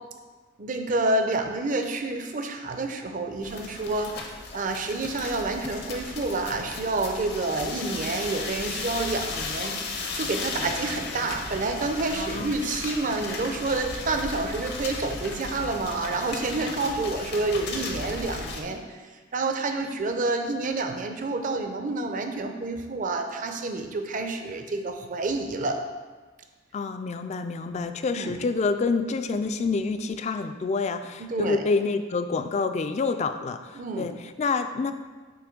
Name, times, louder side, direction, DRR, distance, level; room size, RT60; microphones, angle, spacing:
voice 1, 0.6-19.0 19.3-25.8 28.1-28.4 31.2-31.6 33.8-34.1, right 2 dB, 45° right, 5 dB, 0.5 m, -29 dB
sound 1, 3.4-18.6, left 3 dB, 55° left, 0.7 m, -35 dB
voice 2, 12.1-12.7 26.7-34.9, left 4 dB, 35° left, 9 dB, 0.3 m, -28 dB
6.9 x 3.1 x 5.1 m, 1.4 s
head